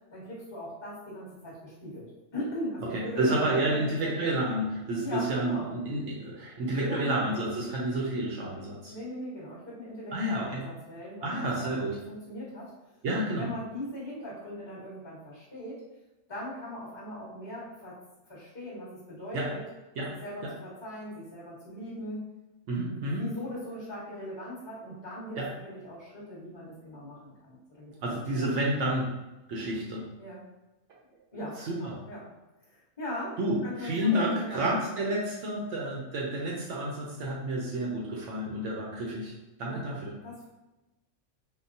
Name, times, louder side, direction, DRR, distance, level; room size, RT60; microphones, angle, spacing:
voice 1, 0.1-4.4 5.0-5.7 6.6-7.2 8.9-12.7 13.3-15.8 16.3-18.0 18.3-19.6 20.2-22.2 22.9-28.6 30.2-30.4 31.3-32.3 32.7-34.7 39.7-39.8 40.2-40.5, left 1 dB, 20° left, -7 dB, 1.0 m, -40 dB
voice 2, 2.9-8.9 10.1-10.6 11.2-12.0 13.0-13.5 19.3-19.5 20.0-20.1 20.4-20.5 22.7-23.2 25.4-25.5 28.0-29.1 29.5-30.0 31.6-31.9 33.4-39.3 39.6-40.1, right 1 dB, 65° right, -3 dB, 0.8 m, -30 dB
3.7 x 2.1 x 2.6 m, 1.0 s
omnidirectional pair, 1.5 m